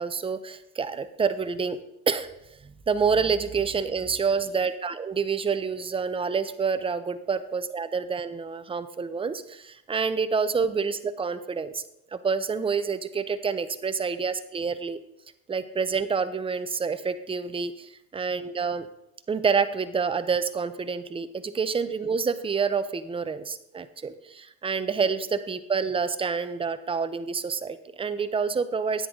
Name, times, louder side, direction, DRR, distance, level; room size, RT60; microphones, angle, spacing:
voice 1, 0.0-1.8 2.1-2.3 2.9-11.8 12.1-15.0 15.5-18.9 19.3-29.1, right 5 dB, 15° right, 12 dB, 0.5 m, -28 dB
10.0 x 9.6 x 3.7 m, 0.82 s
supercardioid pair, 110°, 42 cm